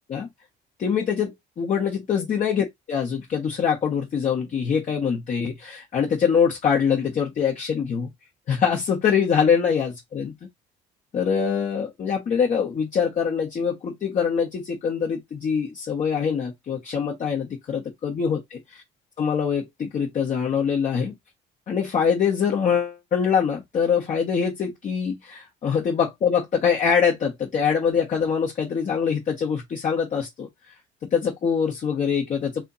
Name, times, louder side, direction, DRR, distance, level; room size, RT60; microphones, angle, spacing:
voice 1, 0.8-8.1 8.5-10.3 11.1-18.8 19.2-21.2 21.7-30.5 31.1-32.6, left 7 dB, 45° left, 1.2 m, -24 dB
3.4 x 2.9 x 4.0 m
cardioid pair, 110°, 17 cm